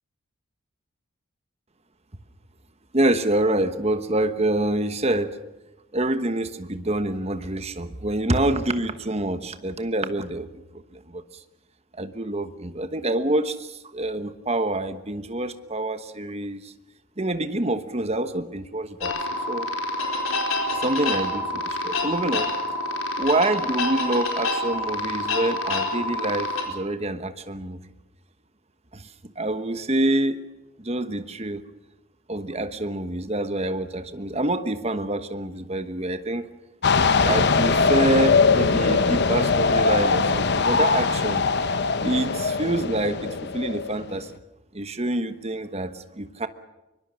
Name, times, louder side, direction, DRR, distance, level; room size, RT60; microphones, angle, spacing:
voice 1, 2.9-5.4 5.9-11.2 12.0-16.7 17.2-19.7 20.7-22.5 23.2-27.8 28.9-30.4 30.8-31.6 32.3-36.5 37.2-41.4 42.0-44.4 44.7-46.5, right 1 dB, 30° right, 10 dB, 1.2 m, -26 dB
sound 1, 19.0-26.6, left 2 dB, 75° left, 4.3 m, -27 dB
sound 2, 36.8-44.2, left 4 dB, 50° left, 0.9 m, -21 dB
23.5 x 23.0 x 6.4 m, 1.0 s
head